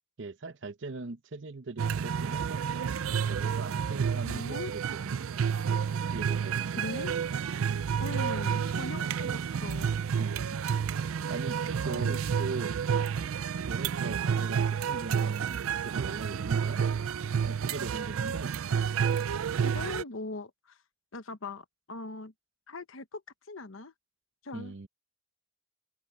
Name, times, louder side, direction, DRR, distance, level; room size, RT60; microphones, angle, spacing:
voice 1, 0.2-2.8 3.3-5.4 6.1-6.8 10.2-10.4 11.3-12.7 13.6-16.8 17.4-18.5 24.5-24.9, right 3 dB, 60° right, 0.7 m, -40 dB
sound 1, 1.8-20.0, right 7 dB, 85° right, 0.4 m, -30 dB
voice 2, 4.2-4.7 6.8-7.1 8.0-10.0 11.8-12.5 19.6-20.8 21.1-22.3 22.7-23.2 23.5-23.9 24.4-24.7, left 2 dB, 75° left, 1.1 m, -40 dB
open air
head